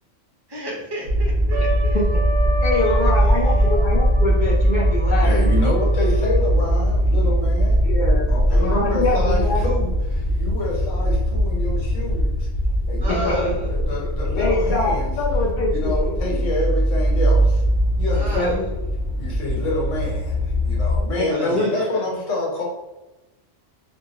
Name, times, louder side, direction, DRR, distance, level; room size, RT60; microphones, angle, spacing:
voice 1, 0.5-2.0 3.2-3.7 13.0-13.7 18.1-18.6 21.3-22.0, right 1 dB, 35° right, -4 dB, 0.4 m, -32 dB
sound 1, 1.1-21.0, equal, 45° left, 0.9 m, -20 dB
Trumpet, 1.5-6.5, right 2 dB, 65° right, 0.7 m, -31 dB
voice 2, 2.6-5.6 7.8-9.6 13.3-13.4 13.6-13.7 14.4-16.4 18.3-18.6 21.1-21.7, left 2 dB, 60° left, -3 dB, 0.5 m, -24 dB
voice 3, 5.2-8.0 8.3-12.5 12.9-15.1 15.7-17.6 18.0-18.6 19.2-22.6, left 1 dB, 80° left, -3 dB, 1.1 m, -27 dB
2.2 x 2.1 x 2.8 m, 1.0 s
omnidirectional pair, 1.3 m